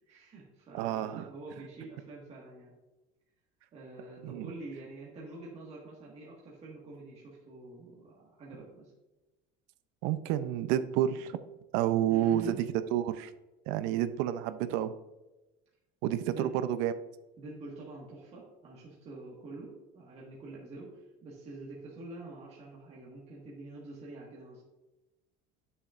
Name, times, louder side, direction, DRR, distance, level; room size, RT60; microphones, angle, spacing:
voice 1, 0.1-2.7 3.7-8.9 12.1-12.6 16.3-16.5 17.4-24.6, right 2 dB, 30° right, -4 dB, 1.6 m, -46 dB
voice 2, 0.7-1.3 4.2-4.5 10.0-11.4 11.7-13.3 13.7-14.9 16.0-16.9, right 11 dB, 75° right, 12 dB, 0.5 m, -30 dB
8.3 x 7.1 x 2.4 m, 1.0 s
cardioid pair, 150°, 20 cm